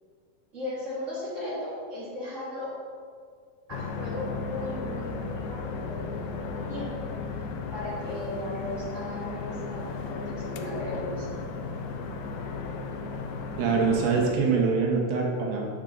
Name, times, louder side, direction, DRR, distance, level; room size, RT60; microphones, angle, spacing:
voice 1, 0.5-2.7 3.7-11.3, left 1 dB, 25° right, -9 dB, 1.8 m, -37 dB
sound 1, 3.7-14.3, left 4 dB, 90° left, 1.9 m, -35 dB
voice 2, 13.6-15.7, right 5 dB, 75° right, -1 dB, 2.9 m, -24 dB
7.4 x 7.1 x 3.9 m, 2.1 s
omnidirectional pair, 4.5 m